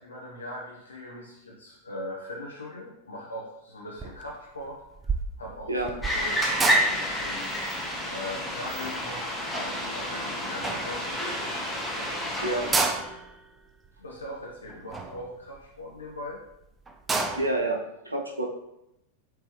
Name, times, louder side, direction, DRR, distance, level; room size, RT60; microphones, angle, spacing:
voice 1, 0.0-4.8 5.4-7.5 8.1-11.7 12.0-12.6 14.0-16.4, left 1 dB, 75° left, -3 dB, 0.7 m, -40 dB
sound 1, 4.0-4.3 4.6-10.2 10.6-11.4 11.8-11.9 12.1-12.2 12.5-16.1 16.5-16.6 16.9-17.6, right 3 dB, 15° right, 0.4 m, -32 dB
sound 2, 6.0-12.8, equal, 5° left, 0.9 m, -29 dB
voice 2, 17.4-17.8 18.0-18.4, right 2 dB, 80° right, 1 dB, 0.6 m, -27 dB
4.4 x 3.3 x 3.1 m, 0.83 s
figure-of-eight pair, 90°, 0 cm